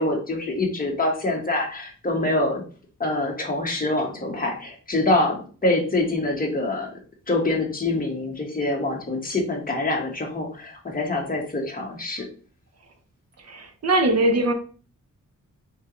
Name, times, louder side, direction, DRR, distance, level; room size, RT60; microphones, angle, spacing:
voice 1, 0.0-2.6 3.0-6.9 7.3-12.3, left 2 dB, 25° left, 0 dB, 1.3 m, -25 dB
voice 2, 13.4-14.5, right 1 dB, 50° right, 5 dB, 0.9 m, -21 dB
4.3 x 4.0 x 3.0 m, 0.39 s
wide cardioid pair, 140°, 32 cm